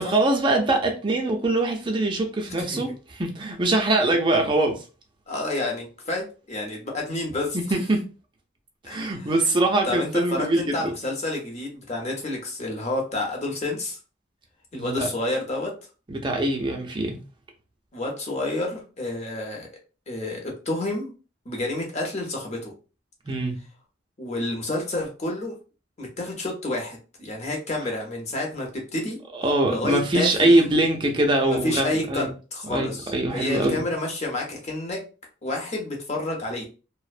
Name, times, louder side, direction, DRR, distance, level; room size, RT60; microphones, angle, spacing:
voice 1, 0.0-4.8 7.5-8.0 8.9-10.8 14.7-15.1 16.1-17.2 23.3-23.5 29.3-32.3 32.7-33.8, right 2 dB, 25° right, 0.4 m, -23 dB
voice 2, 5.3-7.6 8.8-9.3 9.8-14.0 14.7-15.7 17.9-19.7 20.1-21.1 21.5-22.7 24.2-25.6 26.0-29.2 29.7-30.6 31.4-35.0 35.4-36.7, left 2 dB, 35° left, 0.7 m, -29 dB
2.4 x 2.0 x 2.4 m
head